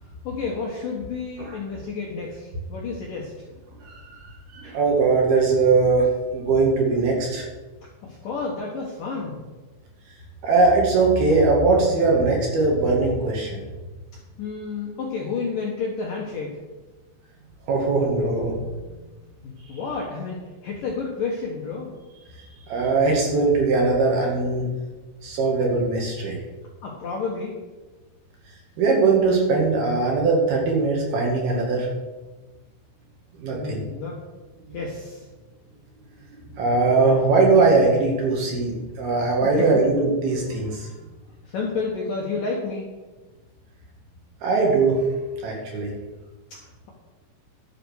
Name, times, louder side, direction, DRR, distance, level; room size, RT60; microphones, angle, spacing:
voice 1, 0.0-3.3 8.0-9.4 14.4-16.6 19.4-21.9 26.8-27.6 33.5-34.2 34.7-35.3 39.4-39.8 41.4-42.9, left 4 dB, 65° left, -2 dB, 2.3 m, -30 dB
voice 2, 3.8-4.2 4.5-7.5 10.4-13.7 17.7-18.8 22.7-24.7 25.2-26.4 28.8-31.9 33.4-33.8 34.7-34.8 36.5-40.9 44.4-45.0 45.4-45.9, right 3 dB, 55° right, -1 dB, 3.6 m, -20 dB
11.5 x 8.6 x 6.5 m, 1.2 s
omnidirectional pair, 5.8 m